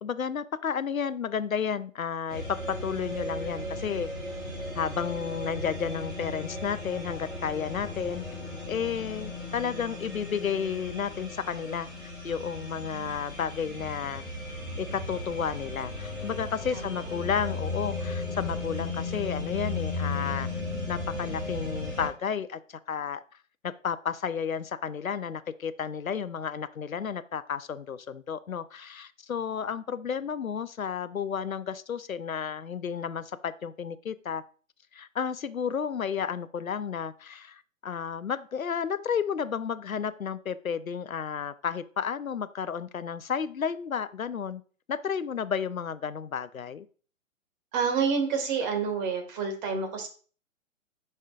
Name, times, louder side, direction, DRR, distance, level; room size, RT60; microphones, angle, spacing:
voice 1, 0.0-4.1 4.7-8.2 8.7-14.2 14.8-20.5 20.9-23.2 23.6-34.4 34.9-44.6 44.9-46.9, left 7 dB, 90° left, 15 dB, 0.6 m, -32 dB
sound 1, 2.3-22.1, left 2 dB, 10° right, 2.6 m, -36 dB
voice 2, 47.7-50.1, right 5 dB, 35° right, 4 dB, 1.7 m, -28 dB
10.0 x 5.4 x 2.4 m, 0.41 s
figure-of-eight pair, 120°, 40 cm